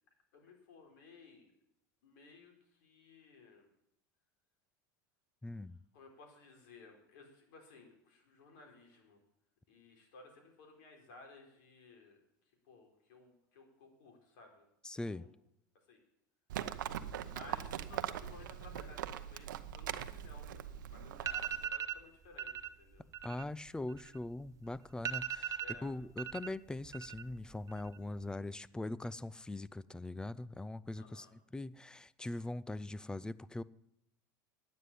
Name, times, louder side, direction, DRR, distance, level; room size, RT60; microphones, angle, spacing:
voice 1, 0.3-1.5 2.0-3.7 5.9-9.2 9.7-12.2 12.7-14.7 15.1-15.3 15.9-16.0 17.3-23.1 25.6-25.9 31.0-31.3, left 3 dB, 70° left, 3.8 m, -57 dB
voice 2, 5.4-5.8 14.8-15.3 23.2-33.6, left 2 dB, 10° left, 0.4 m, -42 dB
Livestock farm animals working animals, 16.5-21.7, right 11 dB, 85° right, 0.7 m, -41 dB
sound 1, 20.7-20.8 21.2-22.0 22.4-22.7 23.0-24.5 24.7-24.8 25.0-26.5 26.8-27.4 27.7-28.2, right 9 dB, 30° right, 0.8 m, -39 dB
9.6 x 9.5 x 8.3 m
hypercardioid pair, 105°, 10 cm